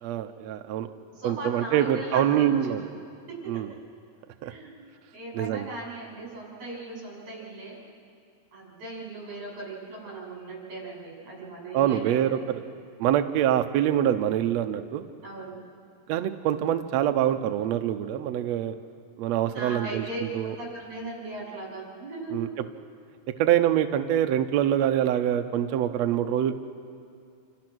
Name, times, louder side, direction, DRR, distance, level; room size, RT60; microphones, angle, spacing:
voice 1, 0.0-0.9 1.2-2.8 3.5-3.7 4.4-4.5 5.3-5.7 11.7-12.6 13.0-15.0 16.1-18.7 19.2-20.6 22.3-22.5 23.4-26.5, right 11 dB, 80° right, 7 dB, 1.5 m, -25 dB
voice 2, 1.1-2.9 3.3-3.6 4.4-4.8 5.1-7.8 8.5-12.1 15.2-15.6 19.4-22.4, right 2 dB, 55° right, -4 dB, 8.4 m, -38 dB
28.5 x 27.0 x 6.2 m, 2.3 s
omnidirectional pair, 4.1 m